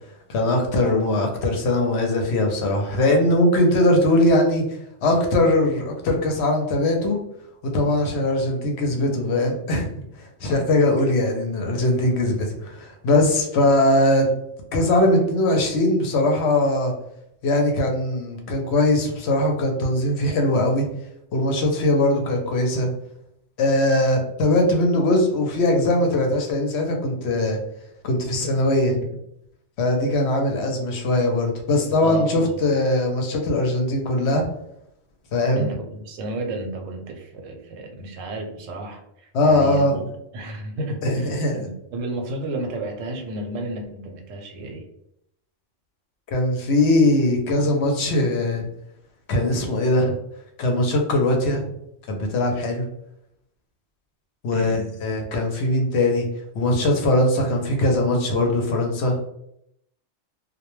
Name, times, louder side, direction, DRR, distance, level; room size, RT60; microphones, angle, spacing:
voice 1, 0.3-4.6 5.0-7.2 7.6-9.9 10.2-14.3 14.7-16.9 17.4-20.9 21.3-22.9 23.6-27.6 28.0-29.0 29.8-34.4 35.3-35.7 39.3-40.0 41.0-41.6 46.3-48.7 49.3-50.2 50.6-51.6 52.1-52.9 54.4-56.3 56.5-59.1, left 1 dB, 65° left, 2 dB, 0.8 m, -20 dB
voice 2, 32.0-32.5 35.5-40.0 40.3-44.9 54.5-54.9, right 1 dB, 85° right, 3 dB, 0.9 m, -32 dB
2.2 x 2.1 x 3.0 m, 0.77 s
omnidirectional pair, 1.3 m